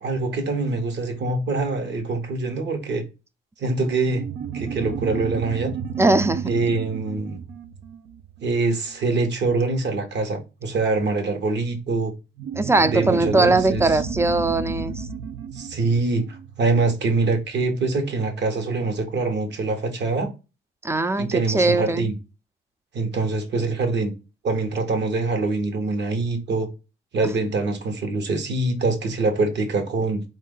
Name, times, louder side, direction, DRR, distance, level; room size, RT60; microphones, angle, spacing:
voice 1, 0.0-3.0 3.6-4.2 4.5-5.7 6.5-7.4 8.4-12.1 12.9-14.0 15.5-16.2 16.6-20.3 21.2-22.1 22.9-24.1 24.4-26.7 27.1-30.2, right 3 dB, 60° right, 1.1 m, -24 dB
sound 1, 4.0-9.0 12.4-17.3, right 6 dB, 90° right, 0.6 m, -32 dB
voice 2, 6.0-6.5 12.6-15.1 20.8-22.1, right 2 dB, 15° right, 0.4 m, -20 dB
4.3 x 2.5 x 3.7 m
cardioid pair, 90°, 20 cm